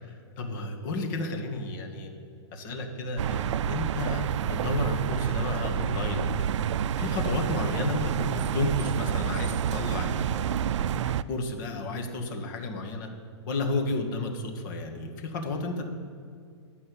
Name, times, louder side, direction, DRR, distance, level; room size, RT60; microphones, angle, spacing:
voice 1, 0.4-2.1 2.5-6.5 7.0-13.1 13.5-15.8, left 2 dB, 40° left, 3 dB, 1.6 m, -32 dB
sound 1, 3.2-11.2, right 9 dB, 80° right, 0.4 m, -29 dB
11.0 x 5.5 x 8.4 m, 2.2 s
hypercardioid pair, 160°, 15 cm